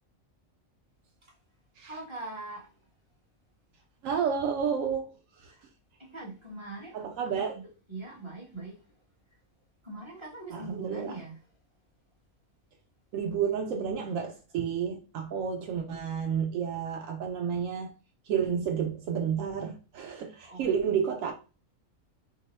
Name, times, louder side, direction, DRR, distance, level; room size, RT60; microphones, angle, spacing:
voice 1, 1.9-2.7 5.5-5.6 6.0-7.0 7.3-8.7 9.8-11.4 20.4-21.0, right 2 dB, 25° right, 1.1 m, -42 dB
voice 2, 4.0-5.1 5.4-5.5 6.9-7.6 10.5-11.1 13.1-17.9 18.2-21.3, right 7 dB, 90° right, 1.0 m, -30 dB
2.9 x 2.0 x 4.1 m
omnidirectional pair, 1.3 m